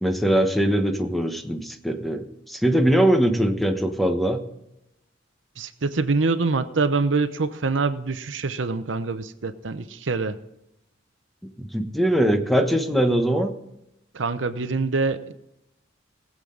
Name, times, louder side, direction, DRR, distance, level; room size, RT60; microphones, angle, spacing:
voice 1, 0.0-4.4 11.6-13.5, right 1 dB, ahead, 5 dB, 1.1 m, -21 dB
voice 2, 5.6-10.4 14.1-15.3, right 3 dB, 80° right, 11 dB, 0.8 m, -25 dB
19.5 x 7.7 x 3.9 m, 0.86 s
head